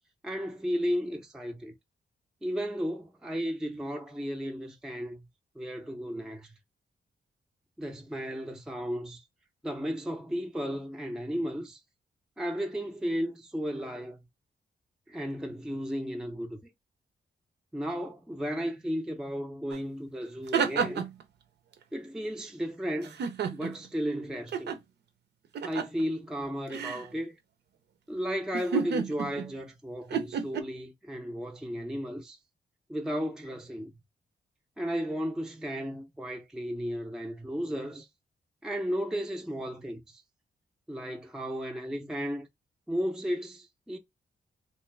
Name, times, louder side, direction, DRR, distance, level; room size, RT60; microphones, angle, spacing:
voice 1, 0.2-1.7 2.4-5.2 5.6-6.5 7.8-9.2 9.6-11.8 12.4-14.2 15.1-16.6 17.7-21.1 21.9-23.1 23.5-24.8 25.6-27.3 28.1-32.4 32.9-33.9 34.8-38.1 38.6-40.2 40.9-42.5 42.9-44.0, equal, 5° right, 0.4 m, -34 dB
sound 1, 19.7-19.8 20.2-21.2 23.0-23.9 24.5-24.8 25.5-26.0 26.7-27.1 28.5-29.5 30.1-30.6, right 6 dB, 75° right, 0.6 m, -31 dB
3.3 x 2.9 x 3.2 m
wide cardioid pair, 150°, 17 cm